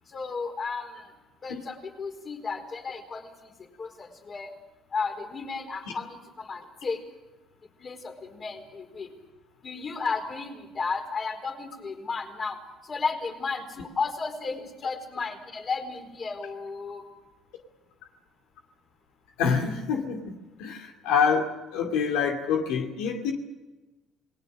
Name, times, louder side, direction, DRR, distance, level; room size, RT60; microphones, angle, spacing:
voice 1, 0.1-1.1 1.4-3.5 3.8-4.5 4.9-7.0 7.8-9.1 9.6-12.6 12.8-17.1, left 4 dB, 40° left, 4 dB, 4.6 m, -33 dB
voice 2, 19.4-23.3, left 6 dB, 90° left, 2 dB, 2.4 m, -26 dB
28.0 x 20.0 x 6.6 m, 1.2 s
cardioid pair, 90°, 0 cm